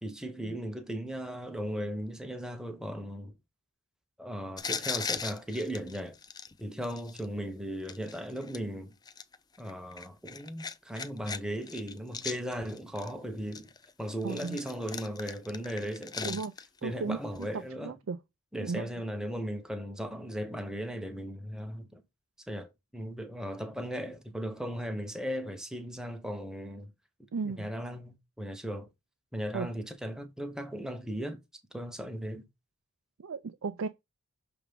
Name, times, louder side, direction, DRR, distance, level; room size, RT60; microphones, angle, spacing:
voice 1, 0.0-3.3 4.2-6.2 6.6-9.0 9.6-13.7 14.0-16.4 16.8-18.0 18.5-22.0 22.5-26.9 27.4-28.9 29.3-31.4 31.7-32.4, equal, 5° right, 0.8 m, -37 dB
sound 1, 4.6-7.3 7.9-8.6 9.1-11.4 11.6-13.1 13.5-16.8 17.4-17.5, left 6 dB, 20° left, 0.4 m, -39 dB
voice 2, 14.2-14.6 16.2-16.5 16.8-17.2 17.8-18.2 18.6-18.9 27.3-27.7 29.5-29.7 33.2-33.9, right 4 dB, 80° right, 0.5 m, -34 dB
6.0 x 3.4 x 5.3 m
head